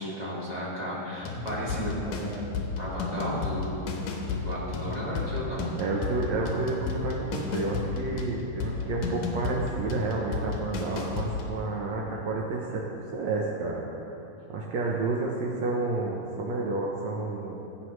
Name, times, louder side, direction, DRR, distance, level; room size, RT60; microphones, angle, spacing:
voice 1, 0.0-3.9 4.2-5.7, equal, 30° right, -8 dB, 0.7 m, -34 dB
sound 1, 1.2-11.6, left 4 dB, 75° left, 2.4 m, -33 dB
voice 2, 5.8-13.8 14.5-17.6, right 3 dB, 70° right, -2 dB, 1.7 m, -30 dB
15.5 x 8.0 x 3.1 m, 2.9 s
omnidirectional pair, 3.9 m